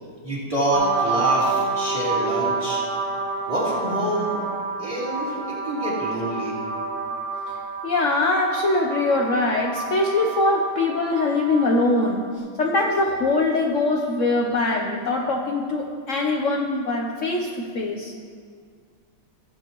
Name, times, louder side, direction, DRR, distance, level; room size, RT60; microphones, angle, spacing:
voice 1, 0.2-2.8 3.5-4.4 4.8-5.4 5.6-6.6, right 1 dB, 15° right, -7 dB, 3.0 m, -26 dB
sound 1, 0.7-12.3, right 4 dB, 60° right, 2.7 m, -29 dB
voice 2, 7.8-12.2 12.6-18.1, left 2 dB, 70° left, 0 dB, 0.7 m, -22 dB
16.0 x 7.9 x 3.0 m, 2.1 s
omnidirectional pair, 2.3 m